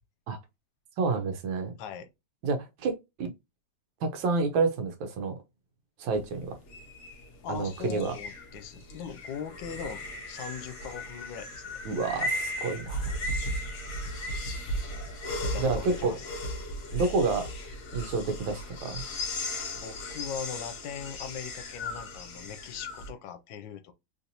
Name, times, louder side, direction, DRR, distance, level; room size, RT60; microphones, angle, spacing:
voice 1, 1.0-1.7 2.4-3.3 4.0-5.4 6.0-6.6 7.5-8.1 11.8-13.1 15.6-16.2 16.9-17.5 17.9-19.0, right 4 dB, 85° right, 1.4 m, -29 dB
voice 2, 1.8-2.1 7.4-10.0 10.3-11.6 15.2-16.3 19.7-23.9, left 7 dB, 80° left, 1.3 m, -40 dB
sound 1, 6.1-23.1, left 1 dB, 55° left, 0.8 m, -36 dB
3.4 x 2.6 x 2.8 m
omnidirectional pair, 2.0 m